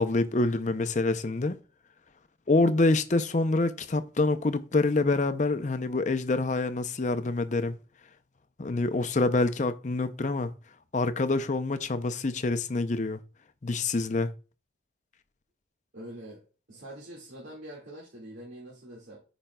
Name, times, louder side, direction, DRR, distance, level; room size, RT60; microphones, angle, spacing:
voice 1, 0.0-1.5 2.5-7.7 8.6-10.5 10.9-13.2 13.6-14.3, left 2 dB, 40° left, 0.5 m, -26 dB
voice 2, 15.9-16.4 16.7-19.2, right 1 dB, 80° right, 2.0 m, -44 dB
13.0 x 5.1 x 2.3 m
head